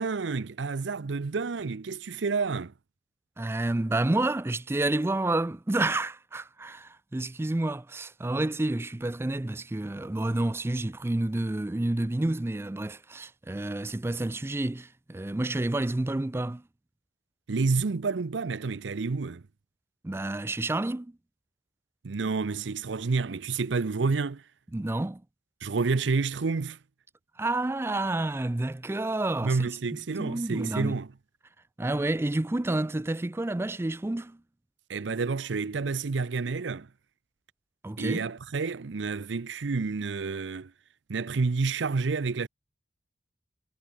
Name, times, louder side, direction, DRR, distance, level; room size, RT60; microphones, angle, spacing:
voice 1, 0.0-2.7 17.5-19.4 22.0-24.4 25.6-26.8 29.4-31.1 34.9-36.9 38.0-40.7 41.1-42.5, right 4 dB, 85° right, 0.6 m, -29 dB
voice 2, 3.4-16.6 20.0-21.1 24.7-25.2 27.4-29.8 30.2-31.0 31.8-34.4 37.8-38.2, right 2 dB, 15° right, 0.4 m, -29 dB
head